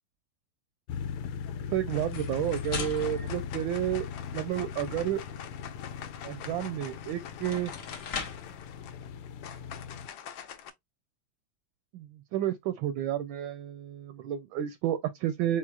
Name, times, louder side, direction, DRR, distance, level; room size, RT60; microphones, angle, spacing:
sound 1, 0.9-10.1, left 7 dB, 90° left, 1.6 m, -39 dB
sound 2, 1.2-1.6 1.9-10.7, left 9 dB, 70° left, 1.3 m, -46 dB
voice 1, 1.7-4.1 4.3-5.2 6.2-7.7 11.9-15.6, right 11 dB, 75° right, 1.2 m, -31 dB
sound 3, 2.0-4.4 6.8-6.9 7.4-8.6, left 5 dB, 50° left, 1.1 m, -40 dB
4.5 x 4.0 x 2.4 m
omnidirectional pair, 2.4 m